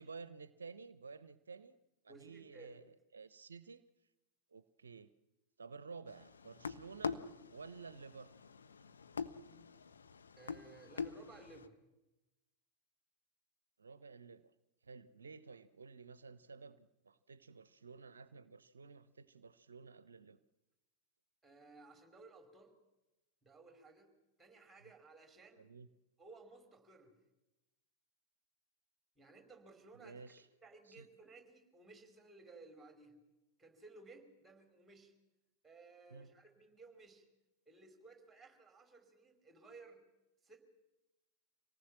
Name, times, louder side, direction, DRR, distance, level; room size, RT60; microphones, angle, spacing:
voice 1, 0.0-1.8 2.0-3.8 4.5-5.1 5.6-7.2 7.5-8.4 13.8-14.5 14.8-20.4 25.6-25.9 30.0-30.5 30.8-31.1 36.1-36.3, right 4 dB, 70° right, 16 dB, 0.7 m, -53 dB
voice 2, 2.1-2.8 10.4-11.8 21.4-22.7 23.4-24.1 24.4-25.7 26.2-27.1 29.1-30.2 30.6-33.2 33.6-35.1 35.6-37.2 37.7-40.0 40.4-40.6, right 3 dB, 10° right, 6 dB, 5.0 m, -58 dB
sound 1, 6.1-11.7, left 5 dB, 70° left, 1.0 m, -45 dB
26.5 x 18.5 x 7.4 m, 1.0 s
figure-of-eight pair, 90°, 0 cm